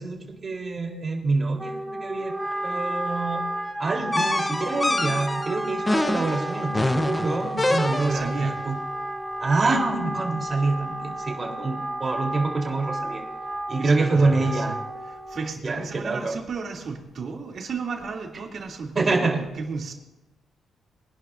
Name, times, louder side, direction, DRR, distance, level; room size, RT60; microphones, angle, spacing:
voice 1, 0.0-2.3 2.6-3.4 3.8-8.8 9.4-13.2 13.7-14.8 15.6-16.4 19.0-19.4, right 3 dB, 40° right, 1 dB, 3.7 m, -26 dB
Wind instrument woodwind instrument, 1.6-15.6, right 1 dB, 15° right, 2.0 m, -32 dB
sound 1, 4.1-8.4, left 2 dB, 20° left, 1.0 m, -26 dB
voice 2, 7.9-8.6 13.8-14.8 15.1-19.9, right 4 dB, 60° right, 1 dB, 2.9 m, -34 dB
23.5 x 11.5 x 2.7 m, 1.0 s
cardioid pair, 70°, 0 cm